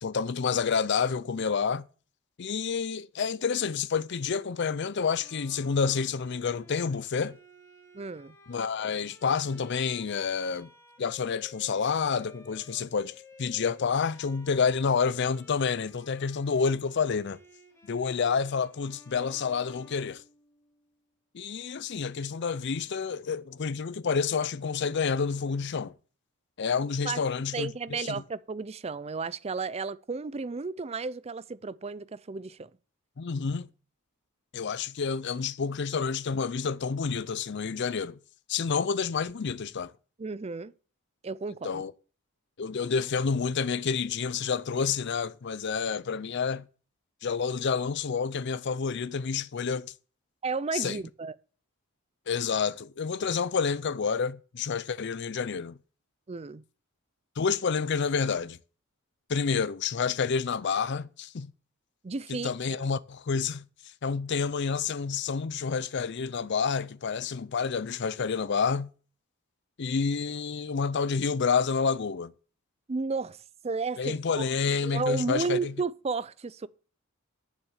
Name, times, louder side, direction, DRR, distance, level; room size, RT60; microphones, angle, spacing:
voice 1, 0.0-1.9 2.4-7.4 8.5-10.7 11.0-17.4 17.9-20.2 21.3-25.9 26.6-28.1 33.2-33.7 34.5-38.2 38.5-39.9 41.6-41.9 42.6-46.6 47.2-49.9 50.7-51.0 52.3-55.8 57.4-58.6 59.3-61.5 62.3-63.6 64.0-68.9 69.8-72.3 74.0-75.7, left 5 dB, 50° left, 0.5 m, -29 dB
Bowed string instrument, 5.1-20.8, left 2 dB, 10° left, 2.8 m, -55 dB
voice 2, 7.9-8.3 27.0-27.2 27.5-32.7 40.2-40.7 41.2-41.8 50.4-51.3 56.3-56.6 62.0-62.5 72.9-74.2 74.8-76.7, right 4 dB, 30° right, 0.4 m, -33 dB
9.9 x 7.2 x 7.2 m
head